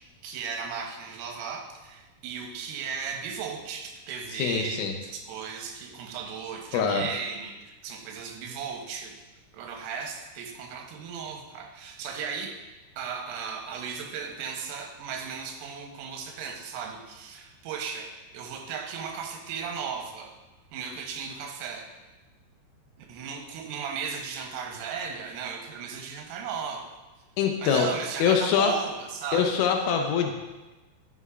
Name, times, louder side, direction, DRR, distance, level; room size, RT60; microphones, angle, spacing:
voice 1, 0.2-9.1 9.5-12.6 13.0-20.3 20.7-21.9 23.0-26.9 27.6-29.6, right 6 dB, 85° right, 3 dB, 3.4 m, -36 dB
voice 2, 4.4-4.9 6.7-7.1 27.4-27.9 28.2-28.7 29.3-30.4, left 7 dB, 85° left, 3 dB, 3.3 m, -24 dB
11.0 x 6.7 x 2.4 m, 1.1 s
omnidirectional pair, 5.8 m